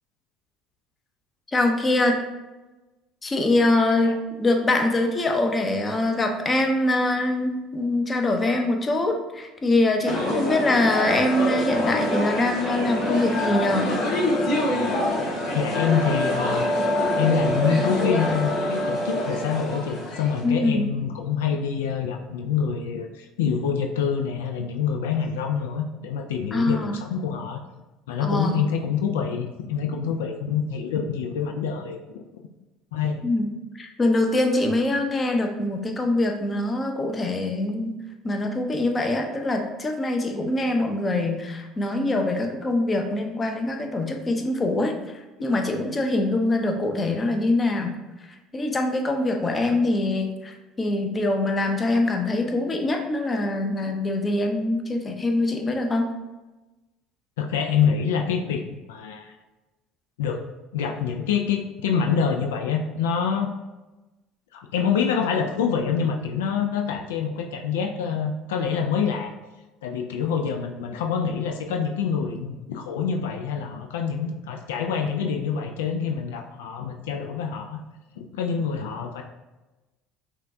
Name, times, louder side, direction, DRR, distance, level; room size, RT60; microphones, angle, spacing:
voice 1, 1.5-2.2 3.2-13.9 20.4-20.9 26.5-27.0 28.2-28.7 33.2-33.5 33.8-38.0 38.2-45.0 45.4-48.0 48.5-56.1, left 2 dB, 25° left, 4 dB, 0.6 m, -24 dB
sound 1, 10.0-20.4, left 1 dB, 70° left, 1.3 m, -25 dB
voice 2, 15.5-16.7 17.2-27.6 28.1-32.2 32.9-33.2 57.4-58.6 58.9-59.4 60.2-60.4 60.7-63.5 64.5-69.3 69.8-77.8 78.2-79.2, left 6 dB, 90° left, 3 dB, 0.3 m, -26 dB
5.6 x 2.3 x 2.6 m, 1.1 s
supercardioid pair, 80°, 0 cm